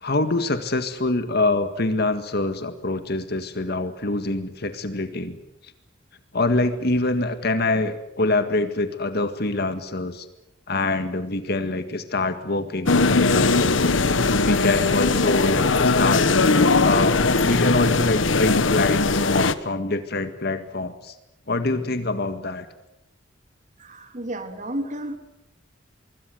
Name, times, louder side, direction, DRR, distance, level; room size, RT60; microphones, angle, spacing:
voice 1, 0.0-5.4 6.3-10.3 10.7-13.6 14.4-16.3 16.8-21.1 21.5-22.7, left 2 dB, 55° left, 9 dB, 1.8 m, -25 dB
sound 1, 12.9-19.5, left 3 dB, 85° left, 1.3 m, -19 dB
voice 2, 23.8-25.2, right 1 dB, 40° right, 6 dB, 3.2 m, -32 dB
25.0 x 23.5 x 7.9 m, 0.85 s
head